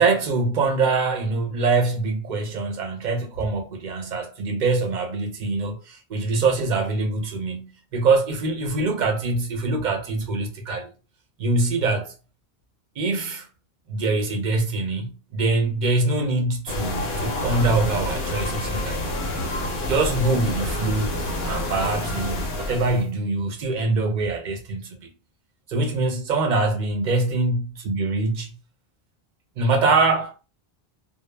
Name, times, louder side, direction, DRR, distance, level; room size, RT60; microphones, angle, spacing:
voice 1, 0.0-10.9 11.4-12.1 13.0-13.5 13.9-19.0 19.9-21.2 21.4-25.1 25.7-28.5 29.6-30.3, right 3 dB, 55° right, 0.6 m, -24 dB
sound 1, 16.7-23.1, left 1 dB, 60° left, 0.7 m, -28 dB
2.0 x 2.0 x 3.1 m
omnidirectional pair, 1.1 m